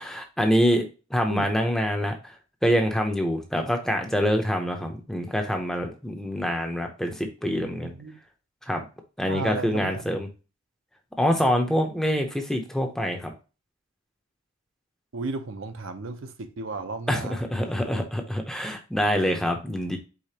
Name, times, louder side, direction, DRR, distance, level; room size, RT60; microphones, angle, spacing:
voice 1, 0.0-2.3 2.6-7.9 8.7-8.8 9.2-10.3 11.2-13.3 17.1-20.0, equal, ahead, 0.7 m, -25 dB
voice 2, 7.8-8.2 9.3-10.1 15.1-17.4, right 3 dB, 65° right, 0.7 m, -34 dB
4.9 x 3.9 x 2.8 m
head